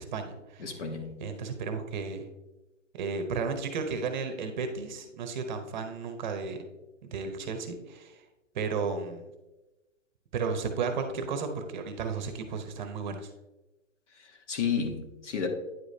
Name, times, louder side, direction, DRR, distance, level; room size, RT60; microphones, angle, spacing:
voice 1, 0.0-2.3 2.9-6.6 7.0-8.2 8.5-9.3 10.3-13.3, right 5 dB, 35° right, 0.8 m, -34 dB
voice 2, 0.6-1.2 14.5-15.5, left 6 dB, 65° left, 1.3 m, -31 dB
9.4 x 4.9 x 2.7 m
hypercardioid pair, 150°, 39 cm